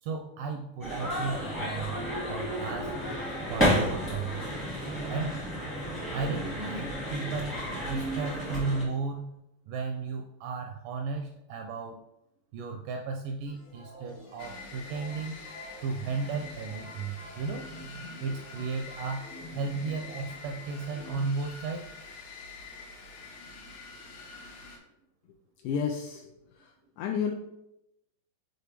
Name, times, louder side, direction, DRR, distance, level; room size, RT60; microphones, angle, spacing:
voice 1, 0.0-2.0 2.3-2.9 3.5-4.4 5.1-5.4 6.1-9.4 9.7-12.0 12.5-15.4 15.8-17.7 18.2-19.3 19.5-21.9, right 4 dB, 80° right, 4 dB, 1.9 m, -34 dB
sound 1, 0.8-8.8, equal, 10° left, 0.6 m, -31 dB
sound 2, 13.5-21.3, equal, 50° left, 1.3 m, -47 dB
sound 3, 14.4-24.8, left 4 dB, 70° left, 2.0 m, -46 dB
voice 2, 25.6-27.3, left 7 dB, 85° left, 1 dB, 1.8 m, -32 dB
6.7 x 4.3 x 3.3 m, 0.86 s
omnidirectional pair, 4.2 m